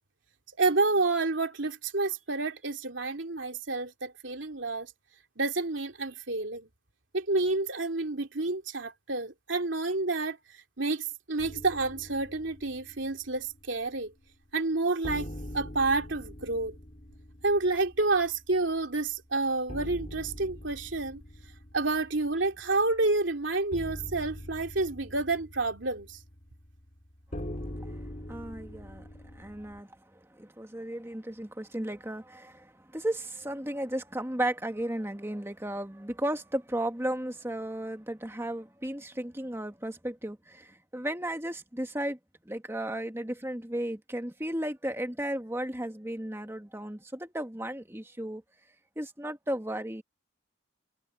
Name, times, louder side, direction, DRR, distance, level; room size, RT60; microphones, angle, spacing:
voice 1, 0.6-4.9 5.4-6.7 7.1-10.4 10.8-14.1 14.5-15.3 15.5-16.8 17.4-21.2 21.7-26.2, right 3 dB, 70° right, 2.8 m, -29 dB
sound 1, 11.4-14.2 14.5-14.6 15.0-29.8, equal, 40° left, 2.6 m, -44 dB
voice 2, 27.6-28.0 28.3-42.2 42.4-48.4 48.9-50.0, right 1 dB, 10° right, 1.7 m, -35 dB
head